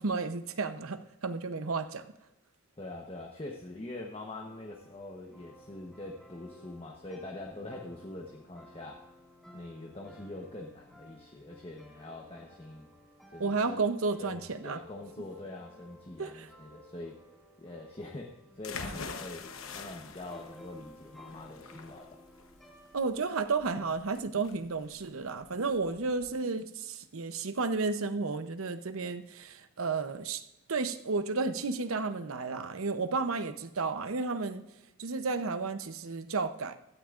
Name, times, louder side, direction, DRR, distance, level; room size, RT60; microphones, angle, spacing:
voice 1, 0.0-2.1 13.4-14.8 16.2-16.5 22.9-30.4 30.7-34.7 35.0-36.8, right 4 dB, 85° right, 10 dB, 0.8 m, -32 dB
voice 2, 2.8-9.1 9.5-12.9 13.3-13.8 14.2-17.2 17.6-22.2, left 2 dB, 25° left, 1 dB, 1.0 m, -44 dB
sound 1, 4.4-23.0, left 1 dB, ahead, 2.2 m, -56 dB
sound 2, 18.6-26.3, left 4 dB, 80° left, 1.0 m, -45 dB
16.0 x 12.5 x 2.5 m, 0.91 s
head